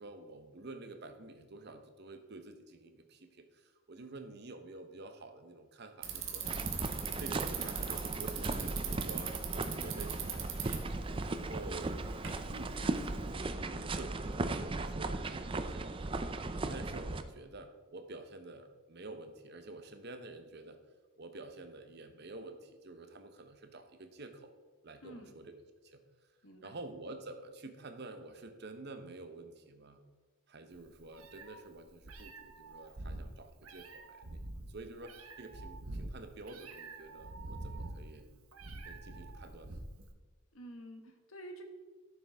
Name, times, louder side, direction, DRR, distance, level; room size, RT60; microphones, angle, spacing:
voice 1, 0.0-6.6 7.2-10.6 11.2-12.1 12.5-16.2 16.7-20.8 21.2-24.5 24.8-26.0 26.6-30.0 30.5-38.3 38.8-39.8, right 2 dB, 50° right, 7 dB, 0.9 m, -49 dB
Bicycle, 6.0-13.3, right 8 dB, 65° right, 1.4 m, -42 dB
sound 1, 6.4-17.2, right 2 dB, 25° right, 0.4 m, -37 dB
voice 2, 25.0-25.4 26.4-26.8 40.5-41.6, right 1 dB, 70° left, 4 dB, 1.4 m, -50 dB
Meow, 30.7-40.1, right 2 dB, 90° right, 1.1 m, -46 dB
13.0 x 7.0 x 3.5 m, 1.4 s
head